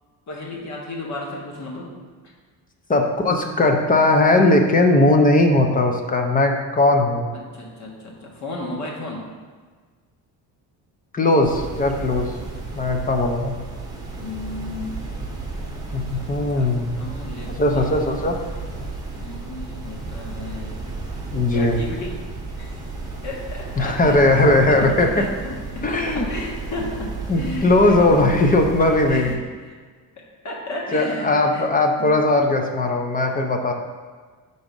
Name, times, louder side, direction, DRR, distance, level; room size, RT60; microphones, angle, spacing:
voice 1, 0.3-1.9 2.2-2.3 7.5-9.2 14.1-15.0 16.2-18.3 19.2-20.8 21.5-22.1 22.6-22.8 23.2-24.3 24.7-28.0 29.1-29.8 30.2-31.7 32.0-32.1 33.7-33.8, left 2 dB, 45° left, -2 dB, 1.5 m, -34 dB
voice 2, 2.9-7.3 11.1-12.3 12.8-13.6 15.9-17.0 17.5-18.4 21.3-21.8 23.8-25.1 25.8-26.2 27.3-29.4 30.9-33.7, left 2 dB, 20° left, 3 dB, 0.6 m, -18 dB
sound 1, 11.4-29.3, right 3 dB, 10° right, 1.0 m, -33 dB
6.0 x 4.0 x 5.2 m, 1.5 s
cardioid pair, 140°, 39 cm